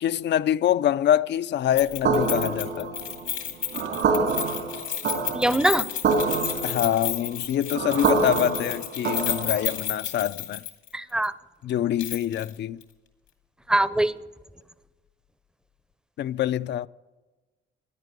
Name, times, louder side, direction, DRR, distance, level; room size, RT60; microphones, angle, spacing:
voice 1, 0.0-2.9 6.6-10.6 11.6-12.8 16.2-16.9, left 11 dB, 60° left, 0.5 m, -25 dB
Keys jangling, 1.8-10.9 11.2-11.3 12.0-12.5 12.8-12.9, left 10 dB, 90° left, 2.3 m, -32 dB
sound 1, 2.0-9.8, right 4 dB, 70° right, 2.7 m, -27 dB
voice 2, 5.3-5.8 10.9-11.3 13.7-14.1, right 1 dB, 5° right, 0.6 m, -22 dB
16.0 x 10.0 x 8.2 m
cardioid pair, 90°, 20 cm